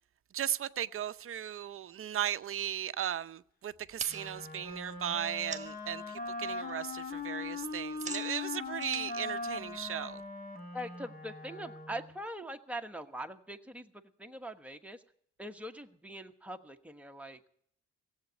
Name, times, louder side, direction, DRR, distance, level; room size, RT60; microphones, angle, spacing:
voice 1, 0.3-10.2, right 10 dB, 45° right, 0.7 m, -36 dB
sound 1, 3.7-5.9 6.3-6.7 7.0-10.2, right 4 dB, 25° right, 1.4 m, -46 dB
Wind instrument woodwind instrument, 4.1-12.2, left 4 dB, 30° left, 1.8 m, -40 dB
voice 2, 10.7-13.9 14.2-15.0 15.4-17.4, right 1 dB, 5° right, 1.2 m, -42 dB
16.5 x 8.2 x 9.4 m
cardioid pair, 90°, 30 cm